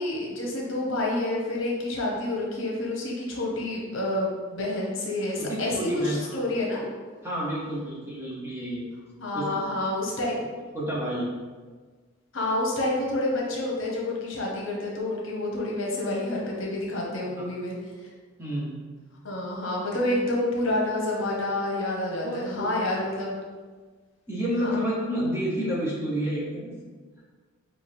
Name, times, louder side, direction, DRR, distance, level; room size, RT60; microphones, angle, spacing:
voice 1, 0.0-6.8 9.2-10.4 12.3-17.7 19.2-23.4 24.6-24.7, left 1 dB, 65° left, -3 dB, 1.0 m, -28 dB
voice 2, 5.4-6.4 7.2-8.9 9.3-9.8 10.7-11.3 17.2-17.4 18.4-18.8 22.2-22.9 24.3-26.7, equal, 10° right, -6 dB, 0.9 m, -30 dB
5.8 x 2.5 x 3.4 m, 1.4 s
head